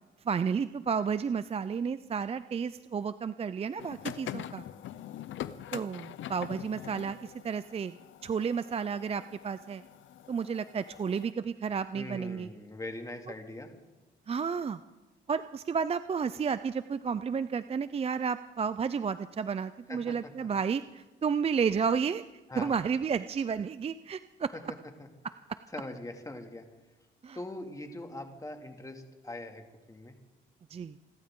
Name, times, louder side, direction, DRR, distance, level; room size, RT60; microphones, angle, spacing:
voice 1, 0.2-4.6 5.7-8.0 8.2-9.8 10.3-12.5 14.3-14.8 15.3-22.2 22.6-24.5 27.2-27.4 30.7-31.0, right 6 dB, 30° right, 13 dB, 0.5 m, -32 dB
sound 1, 3.8-11.3, left 11 dB, 75° left, 0.8 m, -44 dB
voice 2, 11.9-13.7 19.9-20.5 22.5-22.7 25.0-25.1 25.7-26.7 27.3-29.6 29.9-30.1, left 2 dB, 15° left, 4 dB, 2.4 m, -42 dB
28.0 x 12.0 x 3.8 m, 1.2 s
cardioid pair, 90°, 20 cm